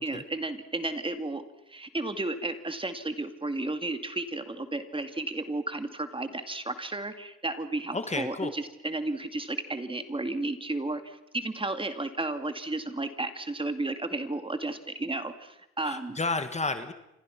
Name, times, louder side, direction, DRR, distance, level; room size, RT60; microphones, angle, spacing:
voice 1, 0.0-1.4 1.7-16.2, right 2 dB, 15° right, 8 dB, 2.4 m, -33 dB
voice 2, 7.9-8.5 15.8-16.9, left 3 dB, 20° left, 9 dB, 1.8 m, -31 dB
30.0 x 26.0 x 6.0 m, 0.88 s
cardioid pair, 90°, 30 cm